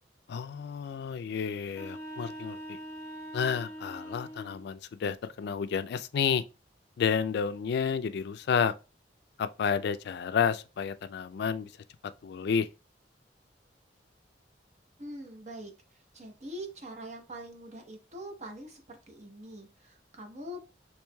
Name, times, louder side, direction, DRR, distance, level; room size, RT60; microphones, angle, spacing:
voice 1, 0.3-2.8 3.3-6.4 7.0-8.7 9.4-11.7 12.2-12.7, left 6 dB, 65° left, 0.3 m, -30 dB
sound 1, 1.7-4.7, equal, 15° left, 0.8 m, -43 dB
voice 2, 15.0-15.7 16.1-20.6, equal, 40° right, 0.9 m, -43 dB
4.6 x 3.0 x 2.2 m
head